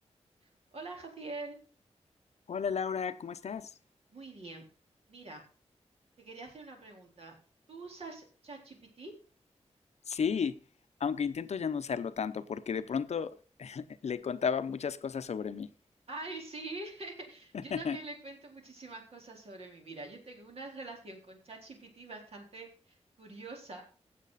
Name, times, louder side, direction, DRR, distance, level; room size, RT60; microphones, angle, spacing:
voice 1, 0.7-1.6 4.1-4.6 5.1-5.4 6.2-7.3 7.7-9.1 16.1-23.8, right 2 dB, 60° right, 4.1 m, -45 dB
voice 2, 2.5-3.8 10.1-10.6 11.0-15.7 17.5-18.0, left 6 dB, 70° left, 0.8 m, -33 dB
16.0 x 7.7 x 4.1 m
wide cardioid pair, 140°, 12 cm